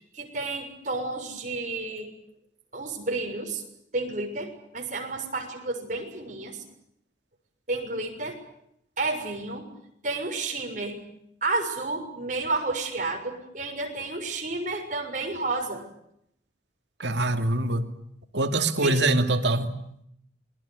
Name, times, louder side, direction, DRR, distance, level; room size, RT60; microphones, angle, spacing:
voice 1, 0.0-2.1 2.7-3.6 3.9-6.6 7.7-8.4 9.0-9.7 10.0-11.0 11.4-15.8 18.8-19.0, right 3 dB, 45° right, 3 dB, 6.7 m, -31 dB
voice 2, 17.0-17.9 18.3-19.8, right 2 dB, 75° right, 7 dB, 2.6 m, -24 dB
27.5 x 22.5 x 8.3 m, 0.74 s
head